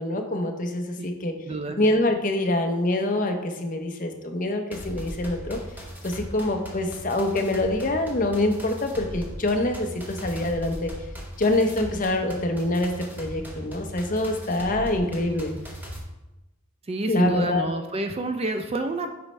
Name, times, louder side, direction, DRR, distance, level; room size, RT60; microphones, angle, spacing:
voice 1, 0.0-1.3 1.8-5.6 6.0-10.9 11.4-15.5 17.1-17.6, left 1 dB, 35° left, 4 dB, 0.7 m, -25 dB
voice 2, 1.4-1.8 16.9-19.1, right 2 dB, 25° right, 7 dB, 0.3 m, -28 dB
sound 1, 4.7-16.0, equal, 10° right, 0.8 m, -38 dB
8.0 x 5.2 x 3.2 m, 1.0 s
head